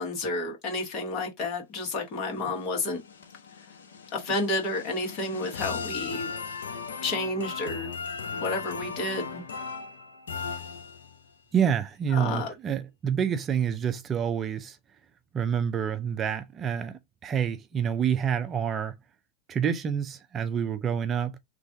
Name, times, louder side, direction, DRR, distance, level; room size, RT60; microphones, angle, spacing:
voice 1, 0.0-3.0 4.1-6.3 7.0-7.9 8.3-9.4 12.1-12.5, left 2 dB, 45° left, 1.7 m, -30 dB
sound 1, 2.4-11.3, left 5 dB, 80° left, 0.7 m, -38 dB
voice 2, 11.5-14.8 15.3-18.9 19.5-21.3, right 8 dB, 30° right, 0.5 m, -28 dB
3.2 x 2.5 x 3.7 m
hypercardioid pair, 95°, 0 cm